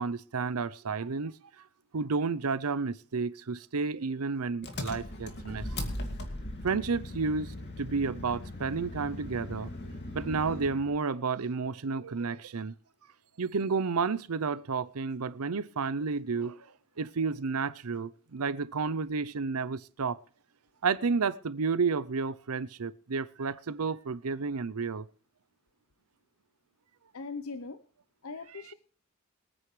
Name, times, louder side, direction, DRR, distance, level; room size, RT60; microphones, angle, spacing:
voice 1, 0.0-1.3 1.9-5.9 6.6-9.7 10.1-12.7 13.4-16.6 17.0-20.2 20.8-25.0, right 4 dB, 85° right, 0.7 m, -31 dB
Engine, 4.6-10.9, left 1 dB, 50° left, 2.3 m, -39 dB
voice 2, 27.1-27.8 28.2-28.7, left 4 dB, 70° left, 0.8 m, -40 dB
23.0 x 9.4 x 3.3 m
head